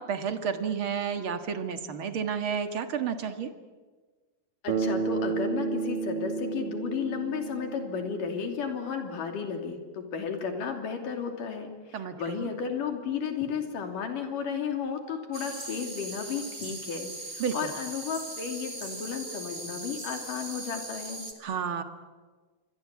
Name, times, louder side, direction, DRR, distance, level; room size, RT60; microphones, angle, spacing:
voice 1, 0.0-3.5 11.9-12.5 17.4-17.7 21.4-21.8, right 7 dB, 45° right, 7 dB, 1.9 m, -31 dB
voice 2, 4.6-21.2, left 6 dB, 70° left, 4 dB, 4.6 m, -33 dB
Bass guitar, 4.7-8.9, right 5 dB, 80° right, 3.7 m, -32 dB
sound 1, 15.3-21.3, right 2 dB, 15° right, 2.4 m, -39 dB
27.0 x 23.0 x 8.5 m, 1.4 s
omnidirectional pair, 3.9 m